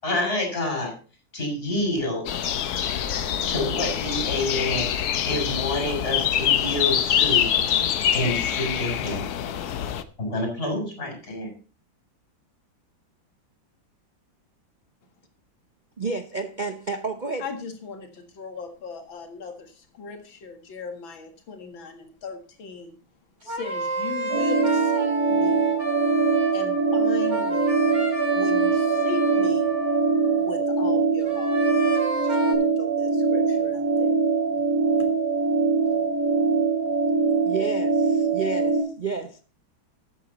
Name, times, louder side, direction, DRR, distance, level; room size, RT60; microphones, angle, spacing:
voice 1, 0.0-0.9 1.3-2.3 3.5-4.9 5.3-7.5 8.1-9.3 10.2-11.5, left 1 dB, 30° left, 6.5 m, -28 dB
sound 1, 2.3-10.0, left 9 dB, 60° left, 1.2 m, -25 dB
voice 2, 16.0-17.4 37.4-39.4, right 4 dB, 75° right, 0.4 m, -30 dB
voice 3, 17.4-23.0 23.4-25.7 26.5-27.8 28.3-29.7 30.3-31.6 32.1-36.2 36.5-37.1, left 4 dB, 80° left, 2.7 m, -38 dB
sound 2, 23.4-30.5 31.2-32.5, right 3 dB, 35° right, 5.4 m, -30 dB
sound 3, 24.3-38.8, right 4 dB, 55° right, 4.1 m, -23 dB
13.0 x 9.0 x 4.1 m
omnidirectional pair, 2.1 m